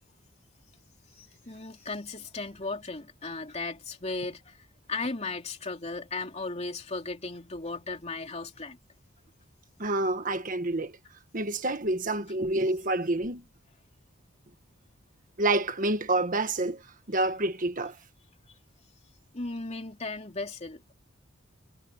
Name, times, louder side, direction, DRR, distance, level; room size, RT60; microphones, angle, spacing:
voice 1, 1.1-8.8 19.3-20.9, left 3 dB, 35° left, 3.0 m, -36 dB
voice 2, 9.8-11.0 11.3-13.4 15.4-16.8 17.1-18.0, right 2 dB, 40° right, 1.6 m, -28 dB
head